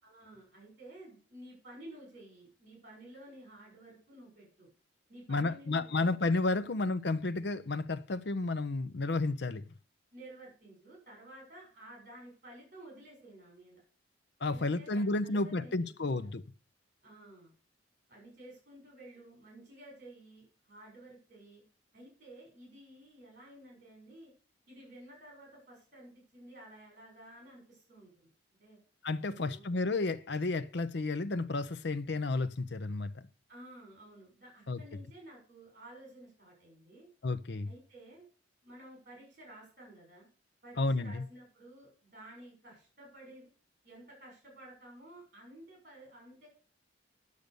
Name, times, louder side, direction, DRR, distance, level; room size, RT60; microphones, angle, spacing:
voice 1, 0.0-4.7 5.1-6.2 6.5-6.8 10.1-13.8 14.4-16.2 17.0-17.5 18.1-21.6 21.9-24.3 24.7-28.3 28.6-28.8 29.3-29.7 33.5-37.1 37.6-38.2 38.6-40.3 40.6-43.5 43.8-46.5, right 1 dB, 45° right, 6.8 m, -53 dB
voice 2, 5.3-9.6 14.4-16.4 29.0-33.1 34.7-34.8 37.2-37.7 40.8-41.2, left 3 dB, 60° left, 0.7 m, -32 dB
10.5 x 6.7 x 6.8 m
head